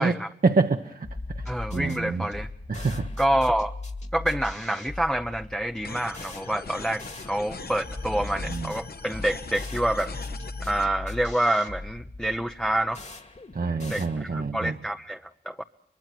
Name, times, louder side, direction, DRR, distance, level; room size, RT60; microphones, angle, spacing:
voice 1, 0.4-2.3 2.7-3.1 8.4-8.7 13.5-14.8, right 4 dB, 60° right, 5 dB, 1.1 m, -27 dB
sound 1, 1.0-14.6, left 2 dB, 45° left, 2.2 m, -38 dB
voice 2, 1.5-2.5 3.2-3.7 4.1-10.1 10.6-13.0 13.9-15.6, right 1 dB, 5° left, 7 dB, 0.8 m, -27 dB
sound 2, 5.8-10.8, left 3 dB, 65° left, 1.5 m, -40 dB
24.5 x 22.5 x 6.1 m, 0.75 s
cardioid pair, 45°, 17 cm